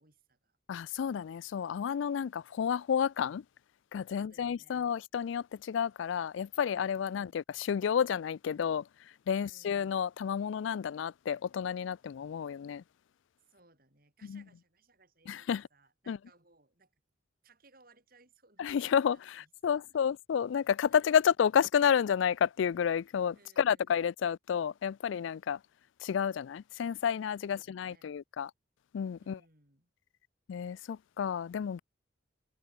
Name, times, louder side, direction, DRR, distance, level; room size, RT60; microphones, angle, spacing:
voice 1, 0.0-0.6 4.1-4.9 6.9-7.4 9.3-9.9 13.5-16.9 17.4-20.1 20.9-21.1 23.3-23.9 27.4-28.1 29.2-29.9, right 3 dB, 45° right, 6.1 m, -65 dB
voice 2, 0.7-3.4 3.9-8.9 9.3-12.8 14.3-14.4 15.3-15.6 16.1-16.2 18.6-25.6 26.0-28.5 28.9-29.4 30.5-31.8, left 7 dB, 75° left, 0.3 m, -30 dB
head